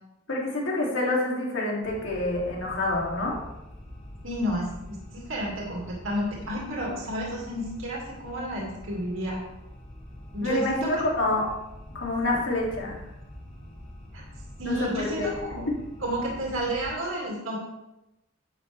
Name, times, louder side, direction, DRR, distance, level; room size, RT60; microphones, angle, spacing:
voice 1, 0.3-3.4 10.4-11.5 11.9-13.0 14.6-15.4, left 2 dB, 70° left, -3 dB, 2.8 m, -27 dB
sound 1, 1.8-17.0, left 1 dB, 15° left, 4.1 m, -45 dB
voice 2, 4.2-9.4 10.3-11.0 14.1-14.2 14.6-15.7 16.0-17.6, equal, 80° right, -3 dB, 2.4 m, -31 dB
11.0 x 8.6 x 3.4 m, 0.93 s
head